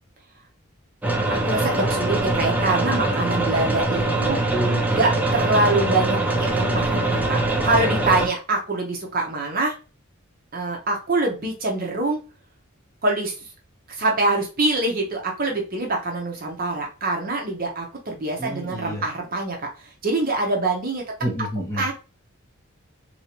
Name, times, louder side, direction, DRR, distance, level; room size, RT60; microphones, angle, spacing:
sound 1, 1.0-8.3, right 2 dB, 5° right, 0.4 m, -23 dB
voice 1, 1.3-4.4 4.9-9.7 10.5-12.2 13.0-13.4 13.9-21.0 21.8-21.9, right 2 dB, 40° right, 0 dB, 0.7 m, -24 dB
voice 2, 4.1-5.0 18.4-19.0 21.2-21.8, right 1 dB, 15° left, -5 dB, 1.2 m, -29 dB
3.3 x 2.7 x 2.9 m, 0.32 s
head